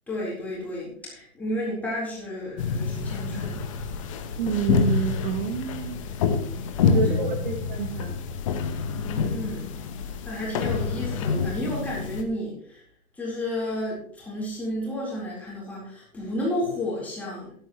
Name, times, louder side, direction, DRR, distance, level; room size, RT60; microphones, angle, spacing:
voice 1, 0.1-3.6 6.9-7.1 8.9-9.7 10.0-12.8 13.1-17.5, left 1 dB, 5° left, -7 dB, 4.1 m, -32 dB
sound 1, 2.6-12.2, left 6 dB, 20° left, 0.9 m, -27 dB
voice 2, 4.4-6.1 6.8-8.2, right 7 dB, 35° right, 4 dB, 1.5 m, -28 dB
14.0 x 11.5 x 3.1 m, 0.64 s
hypercardioid pair, 165°, 44 cm